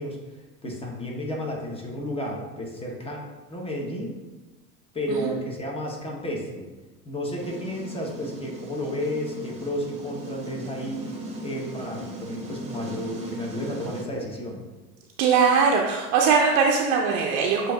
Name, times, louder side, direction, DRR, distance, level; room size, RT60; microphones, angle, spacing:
voice 1, 0.0-3.2 3.5-4.2 4.9-6.7 7.0-11.1 11.4-14.7, equal, 10° left, -1 dB, 0.9 m, -32 dB
sound 1, 7.4-14.0, right 1 dB, 15° right, 1.0 m, -38 dB
voice 2, 15.2-17.7, right 5 dB, 60° right, 0 dB, 0.6 m, -21 dB
7.3 x 2.6 x 2.3 m, 1.2 s
hypercardioid pair, 90°, 46 cm